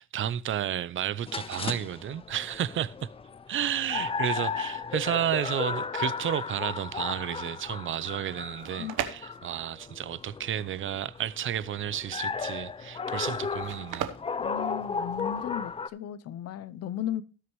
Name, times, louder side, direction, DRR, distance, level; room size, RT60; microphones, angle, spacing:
voice 1, 0.0-3.1 3.5-14.1, right 10 dB, 45° right, 0.6 m, -32 dB
sound 1, 1.3-15.9, left 5 dB, 20° left, 0.4 m, -35 dB
sound 2, 8.4-15.4, right 11 dB, 90° right, 1.1 m, -39 dB
voice 2, 14.4-17.2, left 10 dB, 55° left, 0.7 m, -35 dB
18.0 x 6.4 x 3.1 m
cardioid pair, 130°, 29 cm